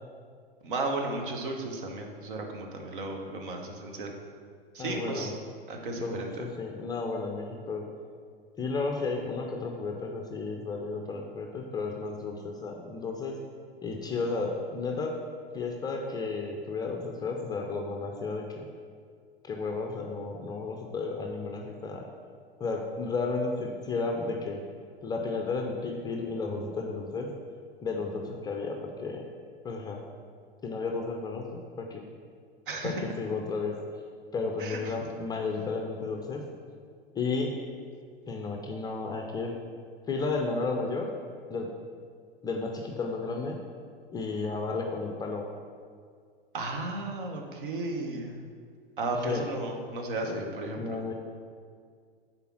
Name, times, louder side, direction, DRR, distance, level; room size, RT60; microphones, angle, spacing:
voice 1, 0.6-4.1 4.7-5.3 5.7-6.3 32.7-33.0 34.6-34.9 46.5-48.4 49.0-51.0, right 2 dB, 60° right, 2 dB, 1.1 m, -34 dB
voice 2, 4.8-5.3 6.0-7.9 8.6-13.4 13.8-15.2 15.5-18.7 19.4-22.1 22.6-24.6 25.0-27.3 27.8-29.2 29.6-30.0 30.6-32.0 32.8-33.8 34.3-36.5 37.1-37.6 38.3-39.6 40.1-41.1 41.5-41.7 42.4-43.6 44.1-45.5 49.1-49.5 50.2-50.4 50.8-51.1, left 3 dB, 15° left, 2 dB, 0.5 m, -33 dB
6.8 x 4.3 x 5.9 m, 2.1 s
figure-of-eight pair, 95°, 30 cm